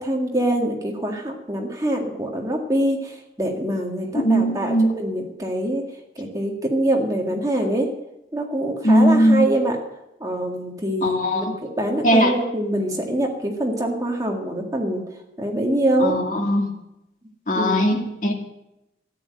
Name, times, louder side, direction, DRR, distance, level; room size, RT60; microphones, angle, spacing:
voice 1, 0.0-5.8 6.2-7.9 8.3-9.8 10.2-15.0 15.4-16.1 17.5-18.0, right 1 dB, 20° right, 1 dB, 1.9 m, -24 dB
voice 2, 4.1-4.9 8.8-9.5 11.0-11.5 12.0-12.3 16.0-16.7 17.5-18.3, equal, 45° left, 1 dB, 2.3 m, -19 dB
13.5 x 10.0 x 7.7 m, 0.88 s
head